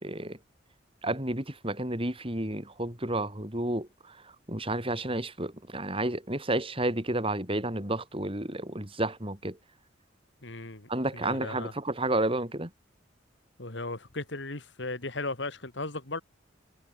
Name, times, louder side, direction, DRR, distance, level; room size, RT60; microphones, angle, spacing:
voice 1, 0.0-0.4 1.0-9.6 10.9-12.7, right 1 dB, 30° right, 4.6 m, -31 dB
voice 2, 10.4-11.7 13.6-16.2, left 2 dB, 60° left, 2.4 m, -36 dB
head